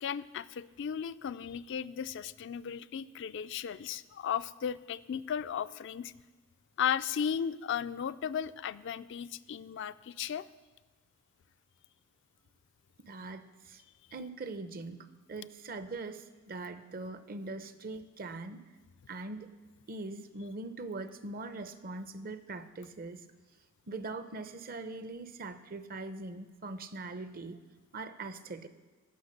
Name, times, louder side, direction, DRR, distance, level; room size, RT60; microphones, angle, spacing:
voice 1, 0.0-6.1 6.8-10.5, left 8 dB, 65° left, 13 dB, 0.4 m, -35 dB
voice 2, 13.0-13.8 14.1-18.6 19.1-19.5 19.9-23.2 23.9-27.6 27.9-28.7, right 3 dB, 45° right, 11 dB, 0.7 m, -42 dB
17.5 x 6.1 x 6.6 m, 1.2 s
head